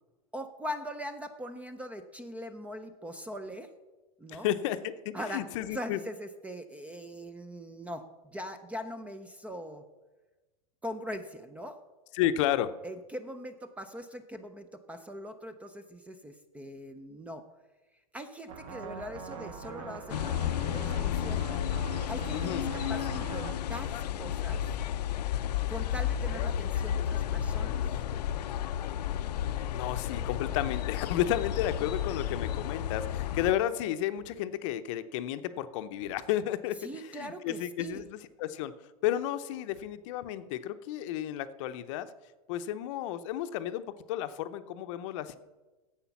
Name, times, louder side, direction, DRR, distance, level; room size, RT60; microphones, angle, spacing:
voice 1, 0.3-3.7 4.2-4.5 5.1-5.4 5.7-9.8 10.8-11.8 12.8-17.5 18.1-21.6 22.1-23.9 24.2-24.6 25.7-27.7 36.8-38.1, equal, 5° right, 10 dB, 0.5 m, -41 dB
voice 2, 4.3-6.0 12.1-12.7 22.3-22.7 29.7-38.7 39.0-42.1 42.5-45.4, left 12 dB, 50° left, 11 dB, 0.7 m, -32 dB
sound 1, 18.5-23.5, right 4 dB, 60° right, 1.5 m, -42 dB
sound 2, 20.1-33.5, left 10 dB, 85° left, 0.6 m, -32 dB
Thump thud, 28.6-28.9 30.4-30.8 32.3-32.6 34.1-34.5 36.0-36.3 37.8-38.2 39.7-40.0, right 2 dB, 80° right, 3.2 m, -58 dB
10.0 x 7.9 x 5.9 m, 1.2 s
supercardioid pair, 145°, 20 cm